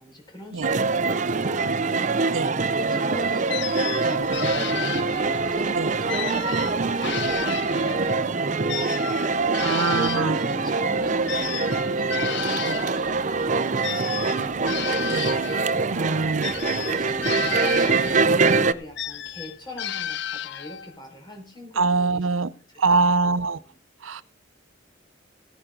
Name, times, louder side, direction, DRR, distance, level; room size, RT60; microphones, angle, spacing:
voice 1, 0.0-2.4 2.7-9.3 9.7-14.9 16.0-23.7, left 1 dB, 20° left, 4.8 m, -41 dB
sound 1, 0.6-18.7, right 4 dB, 40° right, 0.6 m, -24 dB
sound 2, 3.5-5.5 6.1-8.2 8.7-13.0 13.8-15.8 16.4-18.4 19.0-20.9, left 10 dB, 60° left, 0.5 m, -33 dB
sound 3, 3.6-19.8, equal, 5° left, 5.7 m, -51 dB
voice 2, 9.6-10.4 12.7-12.8 15.1-15.4 15.9-16.5 21.8-22.5 22.8-23.6 24.0-24.2, right 4 dB, 85° right, 0.7 m, -23 dB
16.5 x 10.0 x 3.9 m
head